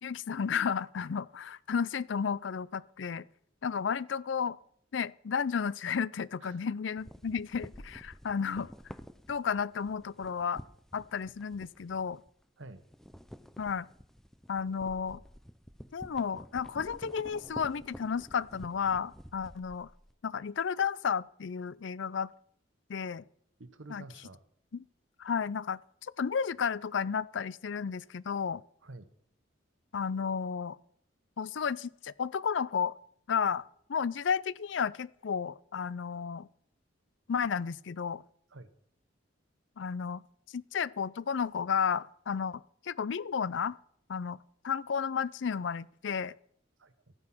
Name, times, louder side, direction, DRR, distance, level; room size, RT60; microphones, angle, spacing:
voice 1, 0.0-3.2 3.6-4.6 4.9-8.7 9.3-10.6 10.9-12.2 13.6-13.9 14.5-15.2 15.9-19.9 20.2-22.3 22.9-23.2 23.9-24.0 24.7-24.8 25.2-25.8 26.2-28.6 29.9-30.8 31.4-32.9 33.3-33.6 33.9-36.5 37.3-38.2 39.8-40.2 40.5-43.8 44.1-44.4 44.6-46.3, left 6 dB, 70° left, 0.5 m, -32 dB
sound 1, 7.0-12.4 12.7-20.1, equal, ahead, 0.6 m, -50 dB
voice 2, 23.6-24.4 28.8-29.1 38.5-38.7 46.8-47.1, right 2 dB, 90° right, 1.1 m, -49 dB
14.5 x 9.6 x 6.0 m
head